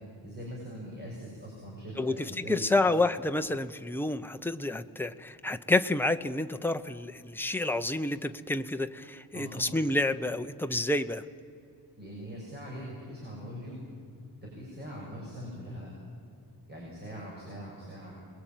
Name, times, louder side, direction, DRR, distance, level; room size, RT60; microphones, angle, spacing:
voice 1, 0.2-2.9 9.3-9.8 12.0-13.8 14.4-15.9 16.7-18.1, equal, 25° right, -3 dB, 6.5 m, -42 dB
voice 2, 2.0-11.2, left 2 dB, 5° left, 8 dB, 0.7 m, -29 dB
27.5 x 21.0 x 9.1 m, 2.5 s
wide cardioid pair, 160°, 39 cm